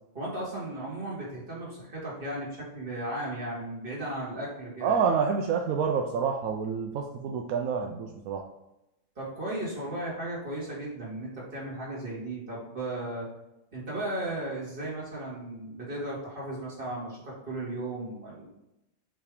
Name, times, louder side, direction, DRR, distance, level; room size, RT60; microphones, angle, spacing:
voice 1, 0.1-5.0 9.2-13.3 13.7-18.5, right 1 dB, 40° right, -7 dB, 2.4 m, -35 dB
voice 2, 4.8-8.4, right 6 dB, 80° right, 2 dB, 1.0 m, -28 dB
5.8 x 3.3 x 4.9 m, 0.91 s
omnidirectional pair, 1.5 m